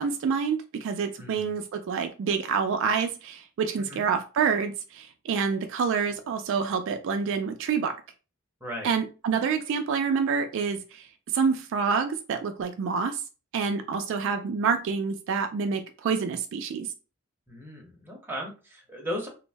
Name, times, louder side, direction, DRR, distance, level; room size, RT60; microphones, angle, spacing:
voice 1, 0.0-7.9 8.8-11.1 11.3-13.2 13.5-16.9, right 6 dB, 60° right, 7 dB, 0.3 m, -27 dB
voice 2, 1.2-1.5 3.8-4.0 8.6-8.9 17.5-19.3, equal, 10° right, -1 dB, 0.7 m, -36 dB
2.6 x 2.0 x 3.2 m, 0.33 s
head